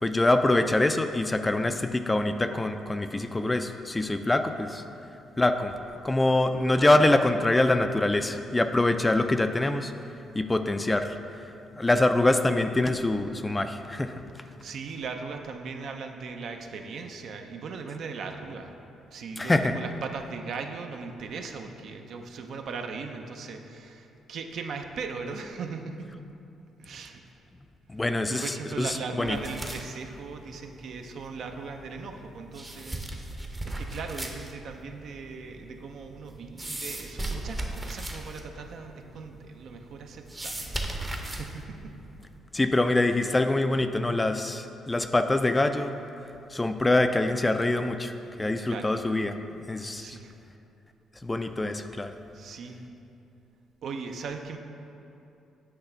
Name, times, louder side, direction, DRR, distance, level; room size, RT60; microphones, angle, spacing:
voice 1, 0.0-4.8 5.4-5.7 6.0-9.9 10.3-11.2 11.8-14.2 19.4-19.7 27.9-29.4 42.5-46.0 46.5-48.1 48.4-49.4 49.7-50.2 51.2-52.1, left 2 dB, 15° left, 8 dB, 0.3 m, -24 dB
voice 2, 11.5-11.9 14.4-18.8 19.1-26.1 26.8-27.2 28.3-41.7 43.2-43.3 48.6-49.0 49.9-50.4 52.3-52.8 53.8-54.6, right 4 dB, 65° right, 5 dB, 0.5 m, -39 dB
sound 1, 29.2-42.4, right 1 dB, 20° right, 0.7 m, -38 dB
8.0 x 3.2 x 5.7 m, 2.8 s
cardioid pair, 90°, 0 cm